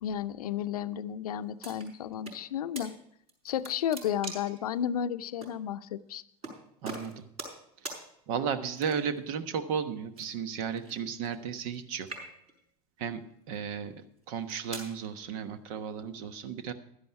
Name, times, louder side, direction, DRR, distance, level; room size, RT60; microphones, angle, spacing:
voice 1, 0.0-2.9 3.4-6.2, left 9 dB, 90° left, 13 dB, 0.6 m, -33 dB
sound 1, 1.6-2.4 2.7-2.9 3.3-4.6 5.4-5.5 6.4-6.6 6.8-7.6 7.8-8.0 8.7-9.2 10.1-11.8 12.0-12.6 13.3-13.5 14.2-14.9, right 2 dB, 35° right, 5.9 m, -42 dB
voice 2, 6.8-7.3 8.3-12.3 13.0-13.2 13.5-13.9 14.3-16.7, right 7 dB, 65° right, 10 dB, 1.2 m, -34 dB
12.0 x 10.5 x 4.7 m, 0.72 s
hypercardioid pair, 95°, 19 cm